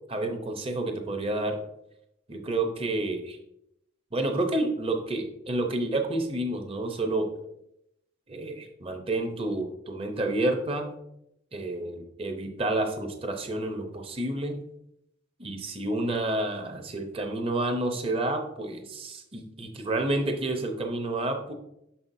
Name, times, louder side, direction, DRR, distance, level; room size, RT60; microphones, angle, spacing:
voice 1, 0.1-1.6 2.3-3.4 4.1-7.3 8.3-10.9 11.5-14.6 15.4-21.5, right 2 dB, 30° right, 4 dB, 0.7 m, -29 dB
6.5 x 5.6 x 2.7 m, 0.81 s
head